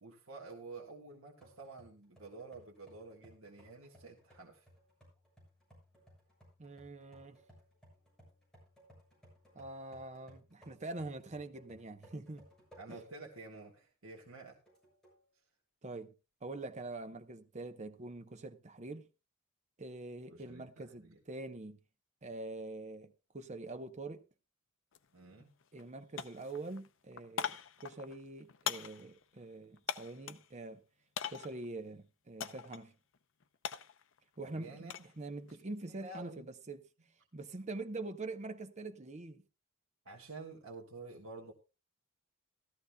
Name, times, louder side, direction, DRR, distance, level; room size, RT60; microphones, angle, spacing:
voice 1, 0.0-4.7 12.8-14.6 20.3-21.2 25.1-25.5 34.4-34.9 35.8-36.5 40.0-41.5, right 3 dB, 75° right, 1.5 m, -50 dB
sound 1, 1.4-13.3 13.8-13.9 14.7-15.2, equal, 5° left, 7.0 m, -62 dB
voice 2, 6.6-7.4 9.5-12.4 12.9-13.0 15.8-16.1 16.4-19.1 19.8-21.8 22.2-24.2 25.7-27.6 27.8-30.8 31.3-32.9 34.4-34.9 35.2-36.8 37.3-39.4, right 2 dB, 35° right, 0.8 m, -44 dB
sound 2, 24.9-25.1 25.4-25.9 26.2-30.5 31.2-31.7 32.4-32.8 33.1-35.1 35.5-35.9, left 8 dB, 65° left, 0.6 m, -42 dB
16.5 x 13.5 x 2.3 m
head